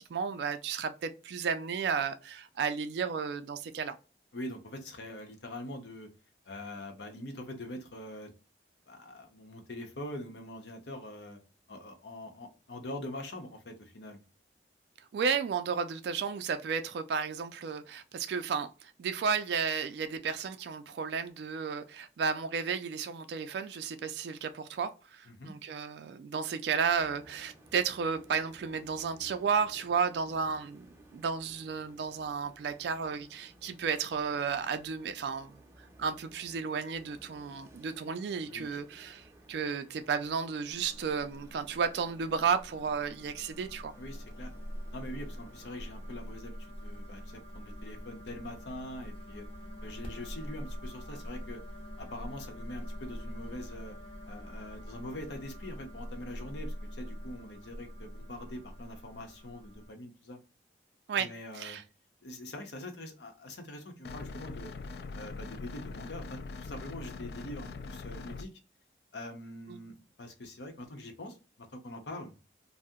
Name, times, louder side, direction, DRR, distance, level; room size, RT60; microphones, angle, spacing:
voice 1, 0.0-4.0 15.1-30.9 31.1-43.9 61.1-61.3 61.5-61.8 69.7-69.8, right 6 dB, 75° right, 0.3 m, -33 dB
voice 2, 4.3-6.1 6.5-8.3 8.9-11.4 11.7-14.2 25.3-25.5 38.5-38.8 44.0-44.5 44.9-49.5 49.8-51.6 52.0-53.9 54.3-60.4 61.2-61.8 62.2-64.7 65.1-68.5 69.1-72.3, left 1 dB, 85° left, 0.7 m, -43 dB
sound 1, 26.9-46.3, right 1 dB, 15° right, 0.5 m, -58 dB
sound 2, 40.7-59.9, equal, 30° left, 0.6 m, -44 dB
sound 3, 64.0-68.4, left 3 dB, 65° left, 0.3 m, -42 dB
2.7 x 2.0 x 3.5 m
head